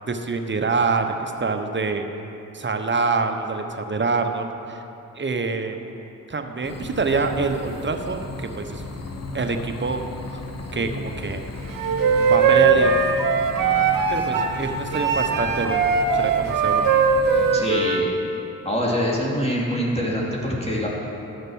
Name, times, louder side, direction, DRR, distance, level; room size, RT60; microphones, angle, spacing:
voice 1, 0.1-2.1 2.5-4.8 5.2-5.8 6.3-8.8 9.3-10.0 10.3-10.4 10.7-11.5 12.2-13.2 14.1-16.9 17.3-18.0, right 4 dB, 35° right, 6 dB, 1.0 m, -26 dB
sound 1, 6.6-17.5, left 2 dB, 50° left, 1.1 m, -35 dB
Wind instrument woodwind instrument, 11.7-14.5 14.9-18.0, right 5 dB, 80° right, 1.0 m, -20 dB
voice 2, 17.5-18.1 18.6-20.9, equal, 20° left, -4 dB, 2.6 m, -24 dB
12.0 x 6.5 x 6.3 m, 2.9 s
supercardioid pair, 50°, 33 cm